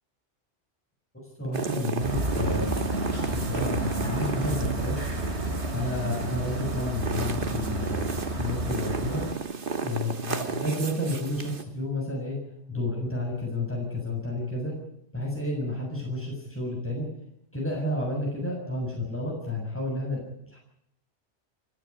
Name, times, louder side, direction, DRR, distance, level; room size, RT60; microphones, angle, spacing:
voice 1, 1.1-2.8 3.3-5.0 5.7-9.3 9.8-12.4 12.7-14.7 15.1-17.1 17.5-20.2 20.5-20.6, left 1 dB, 10° left, -2 dB, 7.2 m, -31 dB
sound 1, 1.5-11.6, right 5 dB, 50° right, 1.5 m, -34 dB
sound 2, 2.0-9.3, right 1 dB, 65° right, 3.9 m, -31 dB
sound 3, 2.5-7.7, equal, 25° right, 6.6 m, -53 dB
30.0 x 12.5 x 9.9 m, 0.75 s
omnidirectional pair, 1.2 m